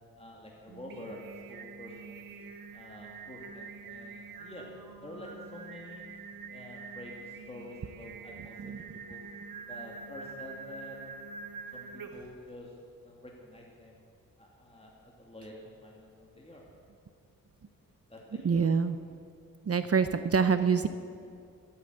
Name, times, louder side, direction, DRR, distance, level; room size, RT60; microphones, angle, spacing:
voice 1, 0.2-2.3 2.7-4.7 5.0-6.1 6.5-9.2 9.6-11.0 11.7-12.7 13.0-14.0 14.4-16.6 18.1-18.7, left 1 dB, 15° left, -2 dB, 2.4 m, -48 dB
Singing, 0.7-12.4, right 4 dB, 80° right, 1.2 m, -46 dB
voice 2, 18.3-19.0 19.7-20.9, right 6 dB, 45° right, 11 dB, 0.7 m, -26 dB
14.0 x 9.0 x 8.0 m, 2.3 s
cardioid pair, 55°, 35 cm